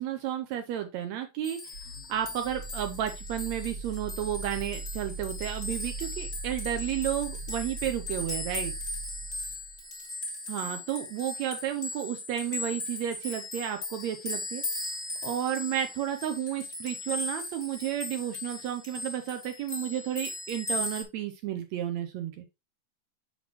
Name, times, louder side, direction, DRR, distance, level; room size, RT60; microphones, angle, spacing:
voice 1, 0.0-1.6 2.1-8.7 10.5-14.6 15.2-22.5, right 11 dB, 75° right, 6 dB, 1.8 m, -32 dB
sound 1, 1.4-21.0, left 2 dB, 55° left, 0.5 m, -38 dB
sound 2, 1.7-9.9, right 3 dB, 60° right, 2.5 m, -40 dB
6.1 x 5.6 x 2.9 m, 0.23 s
omnidirectional pair, 3.5 m